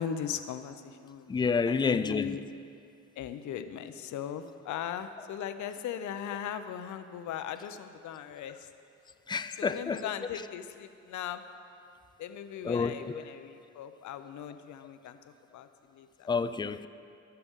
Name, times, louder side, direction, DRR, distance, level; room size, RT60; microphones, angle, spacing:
voice 1, 0.0-2.4 3.2-8.7 9.6-11.4 12.2-15.2 15.5-16.3, left 8 dB, 70° left, 9 dB, 0.7 m, -38 dB
voice 2, 1.3-2.4 9.3-10.1 12.6-13.1 16.3-16.9, left 5 dB, 15° left, 12 dB, 0.3 m, -29 dB
19.0 x 6.8 x 3.7 m, 2.4 s
cardioid pair, 90°, 30 cm